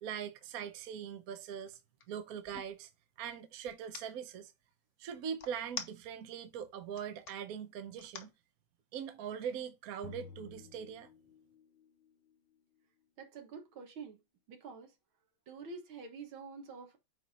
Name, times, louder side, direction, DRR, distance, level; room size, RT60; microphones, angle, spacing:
voice 1, 0.0-1.8 2.1-2.9 3.2-4.5 5.0-8.3 8.9-11.1, right 8 dB, 60° right, 1.0 m, -41 dB
sound 1, 0.5-0.7 1.2-2.8 3.7-4.1 5.4-6.4 6.8-7.3 8.0-8.3, left 7 dB, 55° left, 0.9 m, -45 dB
sound 2, 10.0-11.8, left 6 dB, 85° left, 1.7 m, -52 dB
voice 2, 13.2-14.2 14.5-14.9 15.5-17.0, right 4 dB, 75° right, 2.1 m, -47 dB
8.5 x 3.5 x 4.1 m
omnidirectional pair, 2.2 m